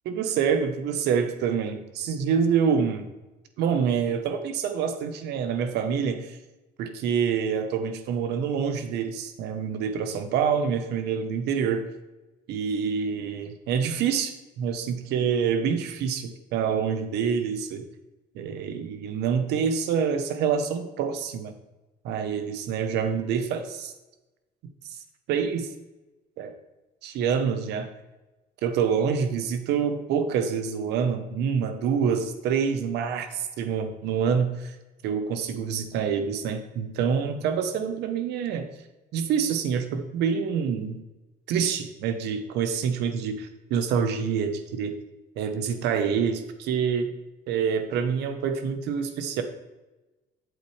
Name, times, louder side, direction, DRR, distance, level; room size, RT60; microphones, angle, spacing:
voice 1, 0.1-3.0 3.6-6.4 6.8-11.8 12.5-17.8 18.3-21.5 22.0-23.9 24.8-25.0 25.3-25.7 26.4-26.5 27.0-27.9 28.6-34.8 35.0-38.7 39.1-41.0 41.5-44.9 45.4-47.1 47.5-49.4, right 7 dB, 80° right, 8 dB, 1.0 m, -26 dB
8.3 x 7.4 x 3.3 m, 1.1 s
cardioid pair, 110°, 17 cm